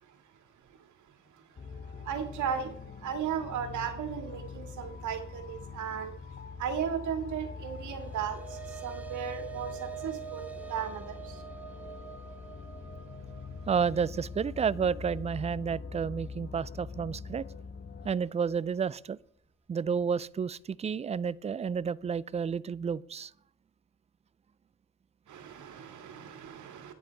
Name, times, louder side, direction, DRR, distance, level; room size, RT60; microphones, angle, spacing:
voice 1, 0.0-0.3 0.7-6.3 6.6-11.4 25.3-26.9, right 8 dB, 75° right, 2.1 m, -36 dB
sound 1, 1.6-18.1, left 5 dB, 30° left, 0.7 m, -44 dB
sound 2, 7.8-16.3, right 11 dB, 5° right, 1.2 m, -46 dB
voice 2, 13.7-17.5 18.0-19.2 19.7-23.3, right 6 dB, 25° right, 0.3 m, -31 dB
9.7 x 9.2 x 4.6 m
cardioid pair, 90°, 30 cm